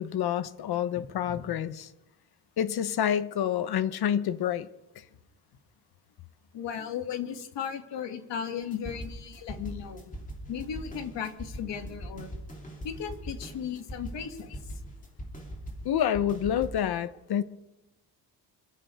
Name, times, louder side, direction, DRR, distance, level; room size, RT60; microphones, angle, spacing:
voice 1, 0.0-1.9 2.6-4.7 15.8-17.4, left 9 dB, 60° left, 1.0 m, -28 dB
voice 2, 1.0-1.5 6.5-10.0 10.5-12.3 12.8-14.5, left 8 dB, 85° left, 2.5 m, -36 dB
sound 1, 8.6-16.7, equal, 20° left, 3.3 m, -41 dB
27.0 x 14.5 x 3.6 m
cardioid pair, 175°, 42 cm